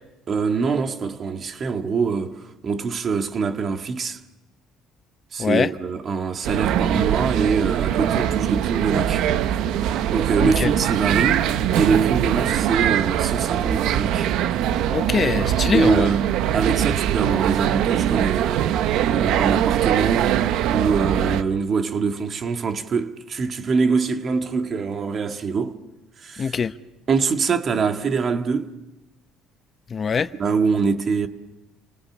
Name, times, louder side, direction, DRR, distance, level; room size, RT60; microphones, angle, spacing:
voice 1, 0.3-4.2 5.3-9.3 10.1-11.4 11.7-14.3 15.7-18.7 19.1-20.4 20.7-25.8 26.2-26.6 27.1-28.7 30.4-31.3, right 5 dB, 45° right, 1.7 m, -24 dB
voice 2, 5.4-5.7 10.4-10.7 14.9-16.1 26.4-26.7 29.9-30.3, left 6 dB, 40° left, 0.9 m, -22 dB
sound 1, 6.4-21.4, right 10 dB, 75° right, 0.9 m, -22 dB
28.5 x 19.0 x 7.3 m
supercardioid pair, 90°, 0 cm